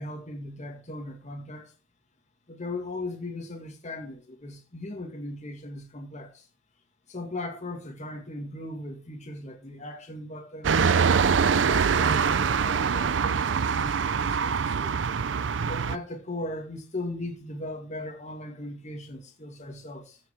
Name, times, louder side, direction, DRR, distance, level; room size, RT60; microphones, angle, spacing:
voice 1, 0.0-1.7 2.5-6.5 7.1-10.9 11.4-15.0 15.7-20.2, left 2 dB, 40° left, 2.0 m, -38 dB
sound 1, 10.6-16.0, right 6 dB, 85° right, 0.5 m, -24 dB
15.0 x 5.7 x 4.5 m
head